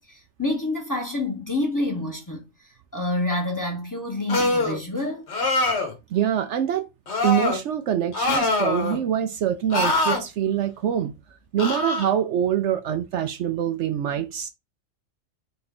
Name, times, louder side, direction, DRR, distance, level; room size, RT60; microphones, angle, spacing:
voice 1, 0.0-5.2, left 2 dB, 15° left, 1.0 m, -28 dB
sound 1, 4.3-4.8 5.3-5.9 7.1-7.6 8.1-9.0 9.7-10.2 11.6-12.1, left 2 dB, 60° left, 1.4 m, -23 dB
voice 2, 6.1-6.9 7.2-11.1 11.5-14.5, right 10 dB, 70° right, 0.8 m, -24 dB
4.1 x 3.3 x 3.6 m
omnidirectional pair, 1.3 m